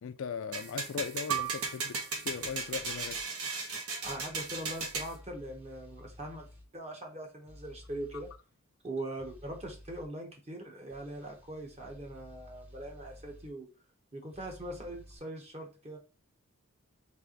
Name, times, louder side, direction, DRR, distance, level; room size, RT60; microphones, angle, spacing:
voice 1, 0.0-3.2, left 7 dB, 65° left, 0.4 m, -39 dB
sound 1, 0.5-5.1, right 4 dB, 80° right, 1.0 m, -36 dB
Piano, 1.3-6.3 6.7-6.8 7.6-8.0, right 13 dB, 65° right, 0.3 m, -42 dB
sound 2, 2.3-3.2 4.0-6.7 7.5-8.4 9.2-10.1 10.9-13.5 14.3-15.2, left 1 dB, 5° right, 0.7 m, -54 dB
voice 2, 4.0-6.5 6.7-8.3 8.8-13.7 14.1-16.0, right 1 dB, 30° right, 1.0 m, -41 dB
3.4 x 3.3 x 3.8 m
head